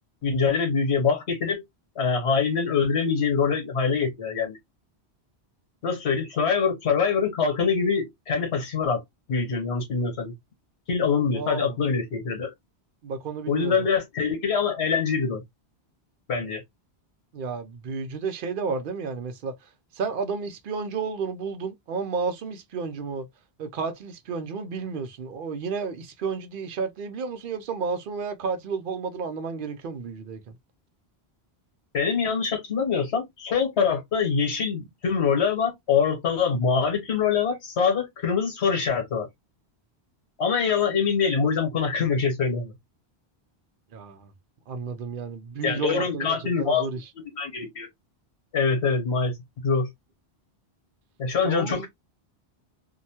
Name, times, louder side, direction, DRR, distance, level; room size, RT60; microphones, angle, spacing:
voice 1, 0.2-1.6 1.9-4.6 5.8-9.0 9.3-10.3 10.9-12.5 13.5-15.4 16.3-16.6 31.9-39.3 40.4-42.7 45.6-46.9 47.2-47.9 48.5-49.3 49.6-49.9 51.2-51.9, left 5 dB, 90° left, 1.4 m, -24 dB
voice 2, 11.4-11.8 13.0-13.9 17.3-19.5 19.9-23.3 23.6-30.6 43.9-44.3 44.7-47.1 51.4-51.9, right 5 dB, 60° right, 0.7 m, -32 dB
2.8 x 2.2 x 2.7 m
omnidirectional pair, 1.1 m